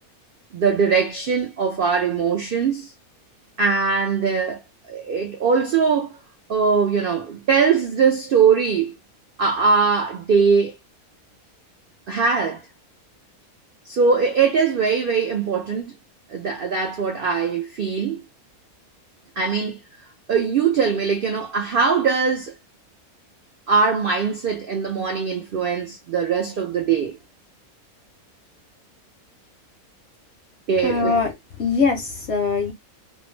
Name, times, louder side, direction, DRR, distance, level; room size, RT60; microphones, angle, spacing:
voice 1, 0.5-2.9 3.6-4.6 4.9-6.2 6.5-8.9 9.4-10.7 12.1-12.6 13.9-15.9 16.3-18.2 19.4-19.8 20.3-22.5 23.7-27.2 30.7-31.1, right 5 dB, 85° right, 0.4 m, -21 dB
voice 2, 30.8-31.3 31.6-32.7, left 4 dB, 65° left, 0.7 m, -22 dB
2.5 x 2.0 x 3.0 m
omnidirectional pair, 1.5 m